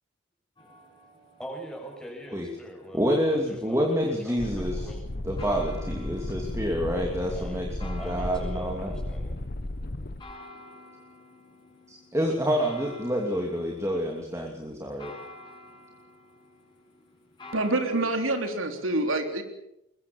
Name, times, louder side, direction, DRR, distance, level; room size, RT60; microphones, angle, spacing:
sound 1, 0.6-18.6, left 2 dB, 25° left, 7.0 m, -50 dB
voice 1, 1.4-5.0 7.3-7.6 8.0-9.3, equal, 5° left, 0 dB, 7.2 m, -42 dB
voice 2, 2.9-4.9 5.2-8.9 11.9-15.1, equal, 15° right, 1 dB, 2.8 m, -28 dB
sound 2, 4.4-10.2, left 1 dB, 50° left, 1.1 m, -34 dB
voice 3, 17.5-19.4, right 2 dB, 85° right, 5 dB, 3.5 m, -26 dB
23.0 x 21.5 x 7.1 m, 0.84 s
head